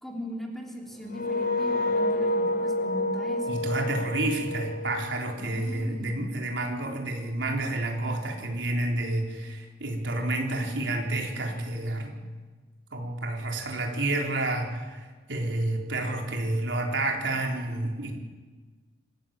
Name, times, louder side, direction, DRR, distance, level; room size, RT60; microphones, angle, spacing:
voice 1, 0.0-3.7 5.4-6.3, equal, ahead, 0 dB, 3.5 m, -38 dB
sound 1, 1.1-5.9, left 1 dB, 50° left, 1.1 m, -29 dB
voice 2, 3.5-12.2 12.9-18.1, right 2 dB, 85° right, 1 dB, 4.0 m, -29 dB
26.0 x 15.0 x 9.1 m, 1.4 s
head